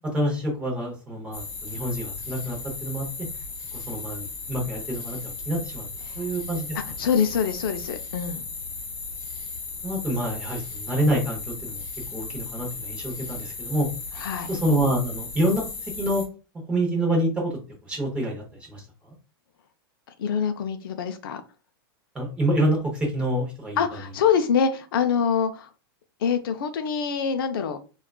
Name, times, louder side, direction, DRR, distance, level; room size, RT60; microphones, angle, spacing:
voice 1, 0.1-3.1 3.7-5.9 6.2-6.8 9.8-11.8 12.1-13.9 14.5-15.6 16.0-16.2 16.7-17.6 17.9-18.4 18.7-19.1 22.1-23.8, right 1 dB, 10° right, -1 dB, 0.7 m, -27 dB
sound 1, 1.3-16.3, left 4 dB, 35° left, 0.9 m, -36 dB
voice 2, 7.0-8.4 14.1-14.5 20.2-21.4 23.8-25.7 26.2-27.8, left 7 dB, 60° left, 8 dB, 0.4 m, -25 dB
3.6 x 2.3 x 2.2 m, 0.33 s
supercardioid pair, 170°, 13 cm